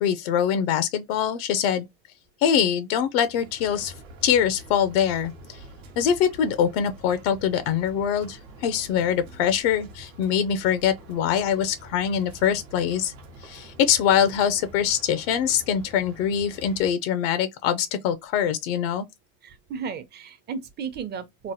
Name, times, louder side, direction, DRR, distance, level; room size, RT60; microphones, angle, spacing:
voice 1, 0.0-1.9 2.4-3.9 4.2-5.6 6.0-13.1 13.4-19.1, left 8 dB, 85° left, 0.5 m, -23 dB
sound 1, 3.2-16.9, right 1 dB, 85° right, 1.0 m, -46 dB
voice 2, 19.4-21.5, right 6 dB, 35° right, 0.7 m, -34 dB
3.0 x 2.0 x 2.7 m
supercardioid pair, 110°, 29 cm